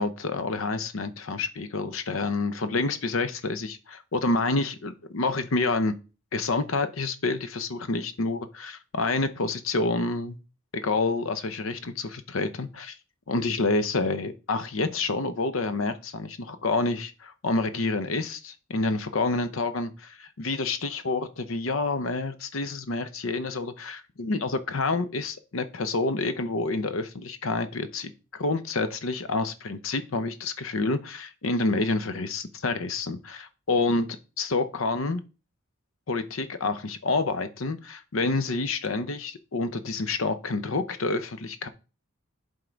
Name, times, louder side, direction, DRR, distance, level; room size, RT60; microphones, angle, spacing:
voice 1, 0.0-5.9 6.3-10.4 10.7-13.0 13.3-34.1 34.4-35.2 36.1-41.7, left 3 dB, 75° left, 0.7 m, -28 dB
7.7 x 3.7 x 5.1 m
head